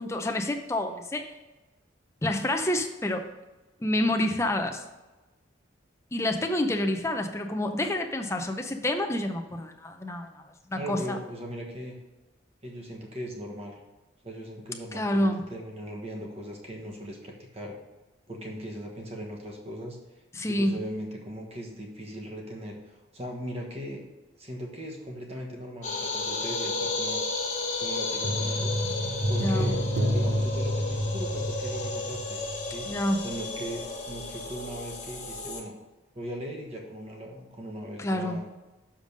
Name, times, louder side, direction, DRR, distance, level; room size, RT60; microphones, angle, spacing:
voice 1, 0.0-1.4 2.2-3.3 3.8-4.8 6.1-11.2 14.9-15.4 20.3-20.8 29.4-29.8 32.8-33.2 38.0-38.4, left 1 dB, 15° left, 5 dB, 0.6 m, -28 dB
voice 2, 10.8-12.0 12.6-13.8 14.2-17.7 18.3-20.0 20.5-24.1 24.4-27.2 27.8-28.8 29.3-29.8 30.1-32.4 32.6-33.0 33.2-35.7 36.1-38.4, equal, 30° right, 0 dB, 1.3 m, -39 dB
sound 1, 25.8-35.6, left 2 dB, 35° left, 1.0 m, -33 dB
sound 2, 28.2-32.7 32.9-33.1, equal, 65° right, 0.8 m, -29 dB
6.9 x 5.2 x 5.2 m, 1.1 s
head